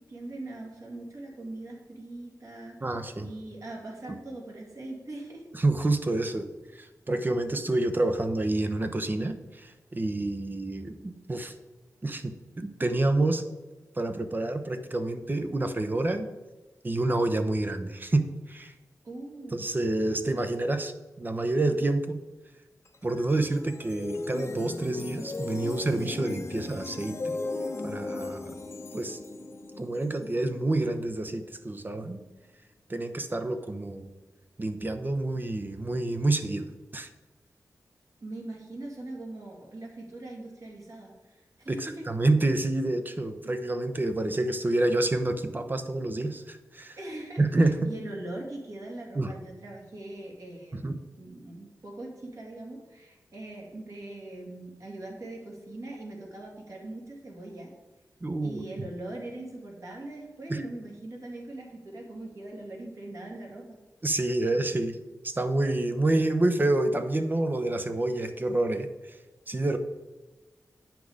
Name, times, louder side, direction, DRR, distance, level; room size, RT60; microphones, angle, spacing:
voice 1, 0.1-5.5 19.0-19.7 38.2-42.1 47.0-57.7 58.4-63.8, right 2 dB, 55° right, -1 dB, 2.4 m, -41 dB
voice 2, 2.8-3.3 5.5-6.5 6.8-11.5 12.0-13.4 14.0-16.3 16.8-18.7 19.5-20.9 21.2-22.2 23.0-27.4 27.8-28.5 28.9-29.2 29.8-32.2 32.9-34.1 34.6-36.7 36.9-37.1 41.7-47.0 47.4-47.9 49.1-49.3 50.7-51.0 58.2-58.6 60.5-60.6 64.0-65.0 65.2-68.9 69.5-69.8, right 2 dB, 30° right, 8 dB, 0.7 m, -28 dB
sound 1, 22.9-32.1, left 3 dB, 45° left, 0.8 m, -38 dB
8.4 x 6.0 x 4.9 m, 1.1 s
wide cardioid pair, 80°, 6 cm